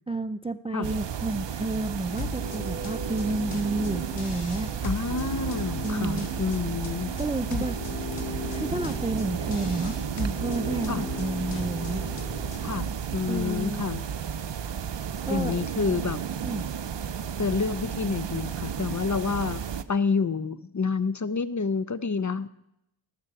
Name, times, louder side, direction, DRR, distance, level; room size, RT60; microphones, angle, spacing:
voice 1, 0.1-4.7 5.8-6.3 7.2-7.8 8.2-8.3 8.5-12.1 13.3-13.8 15.2-15.6 16.4-16.7, right 2 dB, 15° right, 13 dB, 0.3 m, -30 dB
sound 1, 0.8-19.8, right 8 dB, 60° right, 0.6 m, -33 dB
sound 2, 2.2-12.8, left 4 dB, 85° left, 1.6 m, -37 dB
voice 2, 4.8-7.1 7.6-7.7 10.9-11.1 12.6-14.1 15.3-16.2 17.4-19.6 19.9-22.5, left 5 dB, 35° left, 14 dB, 0.6 m, -28 dB
19.0 x 6.8 x 4.7 m, 0.81 s
wide cardioid pair, 55°, 50 cm